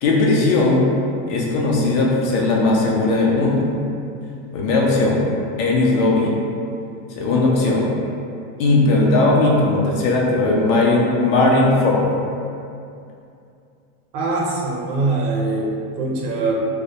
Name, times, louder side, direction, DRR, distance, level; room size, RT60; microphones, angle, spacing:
voice 1, 0.0-0.9 1.3-3.7 4.5-5.3 5.6-6.4 7.1-7.9 8.6-12.1, left 2 dB, 60° left, -2 dB, 0.6 m, -17 dB
voice 2, 14.1-16.5, right 3 dB, 75° right, -2 dB, 0.6 m, -23 dB
2.1 x 2.1 x 2.8 m, 2.5 s
supercardioid pair, 155°, 45 cm